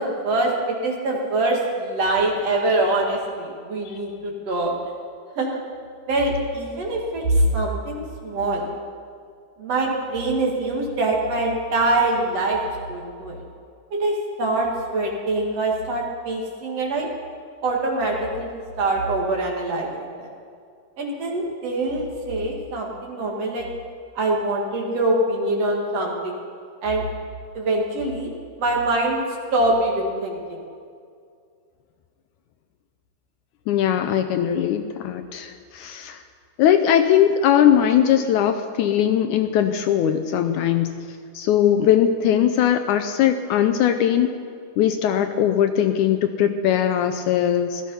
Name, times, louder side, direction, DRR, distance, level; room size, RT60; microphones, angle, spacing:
voice 1, 0.0-4.7 5.4-5.6 6.1-8.7 9.6-12.6 12.9-13.4 13.9-17.1 17.6-20.3 21.0-23.7 24.1-26.4 26.8-27.0 27.5-28.3 28.6-29.2 29.5-30.6, right 2 dB, 55° right, -1 dB, 2.8 m, -24 dB
voice 2, 33.7-36.2 36.6-40.9 41.3-44.3 44.8-47.8, left 10 dB, 75° left, 8 dB, 1.9 m, -20 dB
17.0 x 13.0 x 5.5 m, 2.2 s
omnidirectional pair, 3.8 m